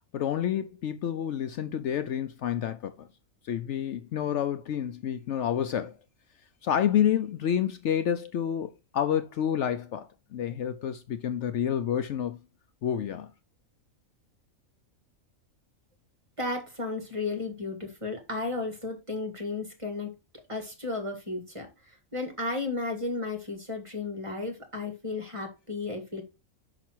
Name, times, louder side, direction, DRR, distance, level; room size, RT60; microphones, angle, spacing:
voice 1, 0.1-3.1 3.4-6.0 6.6-12.4 12.8-13.3, left 9 dB, 65° left, 0.9 m, -29 dB
voice 2, 16.4-20.1 20.5-21.7 22.1-26.2, left 3 dB, 25° right, 1.8 m, -33 dB
6.0 x 5.8 x 4.4 m
omnidirectional pair, 1.4 m